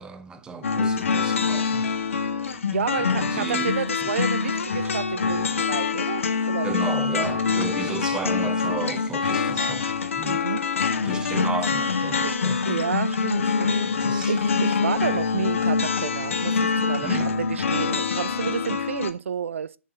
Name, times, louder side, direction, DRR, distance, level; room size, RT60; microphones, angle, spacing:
voice 1, 0.0-1.9 3.0-4.1 6.6-9.9 10.2-10.5 11.0-12.7 14.0-14.3 17.0-17.4, right 5 dB, 10° right, 0.8 m, -34 dB
sound 1, 0.6-19.1, left 5 dB, 65° left, 0.9 m, -25 dB
voice 2, 2.4-6.7 10.2-10.6 11.0-11.5 12.2-12.4 12.7-19.7, right 7 dB, 65° right, 0.4 m, -31 dB
7.1 x 4.5 x 6.4 m
figure-of-eight pair, 125°, 7 cm